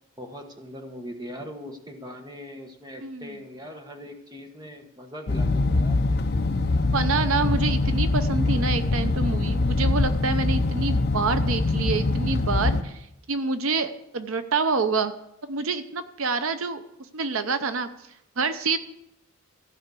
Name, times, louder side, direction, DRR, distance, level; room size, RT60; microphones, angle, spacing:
voice 1, 0.2-6.0, equal, 20° right, 3 dB, 1.3 m, -40 dB
voice 2, 3.0-3.3 6.9-15.1 15.5-16.8 17.1-17.9 18.4-18.8, right 4 dB, 70° right, 10 dB, 0.7 m, -27 dB
sound 1, 5.3-12.8, left 2 dB, 45° left, 0.6 m, -23 dB
15.0 x 5.6 x 8.3 m, 0.83 s
head